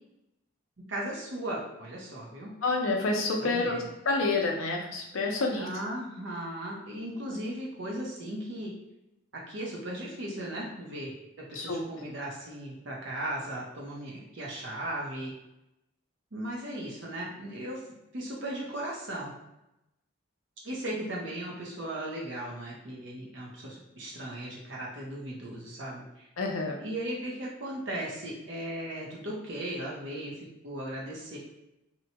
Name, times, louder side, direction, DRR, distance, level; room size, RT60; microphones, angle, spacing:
voice 1, 0.9-2.5 3.4-3.9 5.5-8.7 9.5-11.1 11.5-15.3 16.3-17.8 18.1-19.3 20.6-26.3 26.8-31.4, right 1 dB, 60° right, -3 dB, 0.8 m, -37 dB
voice 2, 2.6-3.8 4.1-5.7 11.5-11.8 26.4-26.8, left 3 dB, 75° left, 1 dB, 0.6 m, -28 dB
2.8 x 2.2 x 2.8 m, 0.89 s
head